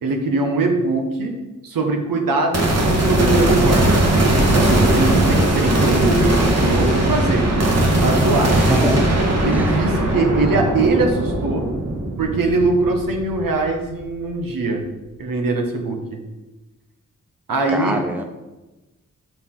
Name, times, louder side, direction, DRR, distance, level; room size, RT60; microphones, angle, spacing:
voice 1, 0.0-1.3 1.6-4.0 4.3-7.5 8.0-8.6 9.4-11.7 12.2-14.9 15.2-16.2 17.5-18.0, right 2 dB, 85° right, 3 dB, 1.3 m, -21 dB
sound 1, 2.5-13.9, right 1 dB, 50° right, 1.5 m, -18 dB
voice 2, 8.5-9.1 9.5-9.8 17.7-18.2, right 1 dB, 5° right, 6 dB, 0.7 m, -23 dB
6.6 x 6.5 x 3.9 m, 1.1 s
wide cardioid pair, 95°, 33 cm